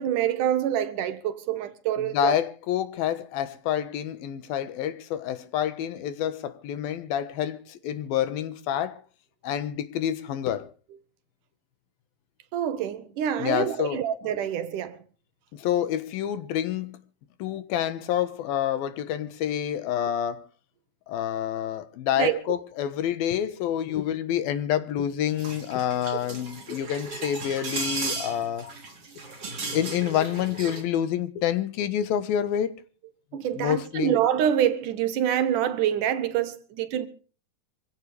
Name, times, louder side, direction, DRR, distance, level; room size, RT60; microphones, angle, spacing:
voice 1, 0.0-2.4 12.5-15.0 22.2-22.4 33.3-37.1, right 10 dB, 70° right, 2.4 m, -26 dB
voice 2, 2.0-9.0 9.4-10.7 13.4-14.0 15.5-17.0 17.4-20.4 21.1-28.7 29.7-32.7 33.3-34.1, left 10 dB, 90° left, 3.2 m, -28 dB
sound 1, 25.3-30.8, right 3 dB, 40° right, 4.5 m, -35 dB
25.0 x 16.0 x 3.4 m
omnidirectional pair, 4.1 m